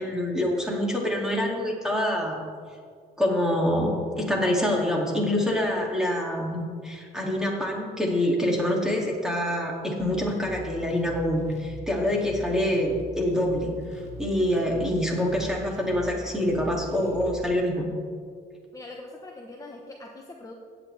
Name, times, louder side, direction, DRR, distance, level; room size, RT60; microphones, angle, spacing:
voice 1, 0.0-2.4 3.2-13.7 14.2-17.9, left 1 dB, 5° right, -2 dB, 2.3 m, -26 dB
sound 1, 10.0-17.5, left 1 dB, 40° left, 2.0 m, -42 dB
voice 2, 18.7-20.5, left 2 dB, 20° left, 1 dB, 1.0 m, -42 dB
16.0 x 8.8 x 3.4 m, 2.1 s
cardioid pair, 110°, 17 cm